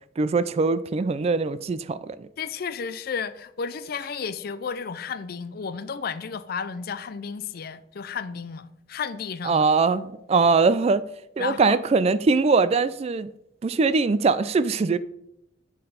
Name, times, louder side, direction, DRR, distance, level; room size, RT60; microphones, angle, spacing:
voice 1, 0.2-2.3 9.4-11.0 11.4-13.3 13.6-15.0, right 4 dB, 35° right, 0.3 m, -22 dB
voice 2, 2.4-9.6 11.4-11.8, left 6 dB, 55° left, 0.4 m, -33 dB
9.3 x 3.9 x 5.0 m
head